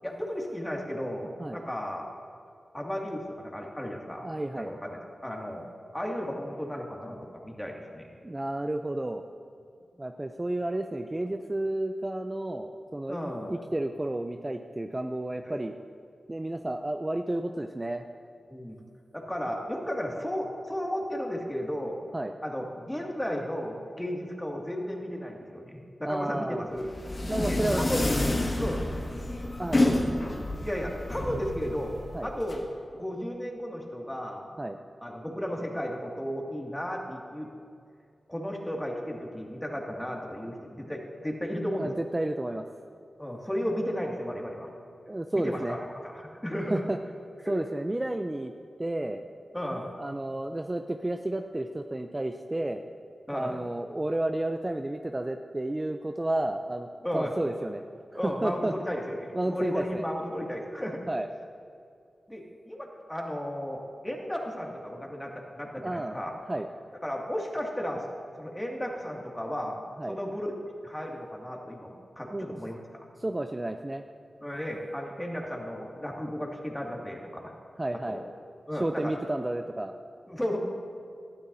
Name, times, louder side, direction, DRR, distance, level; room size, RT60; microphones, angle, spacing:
voice 1, 0.0-2.1 2.7-4.3 4.7-5.7 5.9-8.1 13.1-13.5 18.5-18.8 19.1-22.1 22.4-26.9 27.5-28.3 28.6-28.9 30.6-32.7 33.0-34.5 35.0-37.5 38.3-41.9 43.2-44.7 45.3-45.8 46.0-46.8 47.4-47.5 49.5-49.9 53.3-53.6 57.0-57.3 58.1-61.0 62.3-66.3 67.0-68.0 68.4-69.8 70.1-70.5 70.8-72.8 74.4-77.5 78.1-78.2 78.7-79.1 80.3-80.6, equal, 10° left, -1 dB, 2.3 m, -34 dB
voice 2, 4.2-4.7 8.2-9.2 10.0-13.2 13.5-15.7 16.3-18.0 22.1-22.3 26.0-26.6 27.3-27.8 29.6-30.0 32.1-32.3 34.6-34.8 41.7-42.7 45.0-45.8 46.7-47.0 47.5-48.5 48.8-49.2 50.0-52.8 53.3-57.8 58.1-58.7 59.3-60.1 61.1-61.3 65.8-66.2 66.5-66.7 70.0-70.2 72.3-72.6 73.2-74.0 77.8-78.2 78.7-79.9, right 1 dB, 25° right, 6 dB, 0.5 m, -31 dB
sound 1, 26.8-32.6, left 1 dB, 45° left, 1.9 m, -29 dB
18.5 x 12.0 x 2.7 m, 2.3 s
cardioid pair, 45°, 0 cm